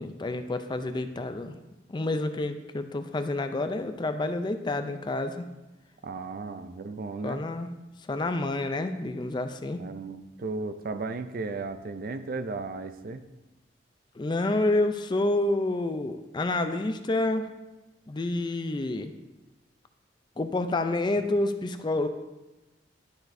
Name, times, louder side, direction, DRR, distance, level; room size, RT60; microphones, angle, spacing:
voice 1, 0.0-1.6 1.9-5.5 7.2-7.7 8.1-9.8 14.2-17.5 18.1-19.1 20.4-22.1, left 2 dB, 25° left, 8 dB, 0.4 m, -28 dB
voice 2, 6.0-7.4 9.8-13.2, right 3 dB, 50° right, 9 dB, 0.4 m, -35 dB
11.5 x 6.0 x 2.6 m, 1.1 s
head